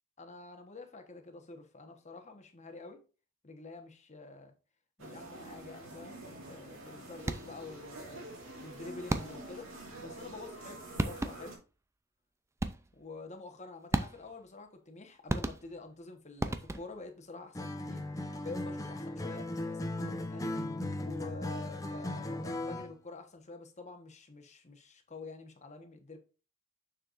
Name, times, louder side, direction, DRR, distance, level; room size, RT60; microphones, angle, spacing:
voice 1, 0.2-3.0 3.4-4.5 5.0-8.3 8.6-9.7 10.0-11.6 12.9-20.5 21.0-26.2, left 3 dB, 35° left, 1.2 m, -48 dB
sound 1, 5.0-11.6, right 1 dB, 70° right, 2.5 m, -47 dB
sound 2, 7.2-7.7 9.1-9.6 10.6-10.7 11.0-11.6 12.6-13.1 13.9-14.5 15.3-16.0 16.4-17.1, right 1 dB, 15° right, 0.4 m, -35 dB
Acoustic guitar, 17.5-22.9, left 1 dB, 15° left, 0.7 m, -37 dB
6.7 x 6.5 x 2.5 m
head